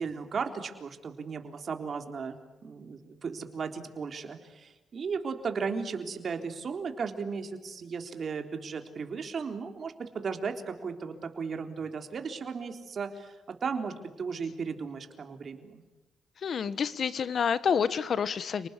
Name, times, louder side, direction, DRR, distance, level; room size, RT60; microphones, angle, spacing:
voice 1, 0.0-15.8, right 5 dB, 45° right, 6 dB, 3.7 m, -36 dB
voice 2, 16.4-18.7, left 7 dB, 50° left, 15 dB, 1.5 m, -28 dB
30.0 x 20.0 x 10.0 m, 1.1 s
cardioid pair, 90°, 0 cm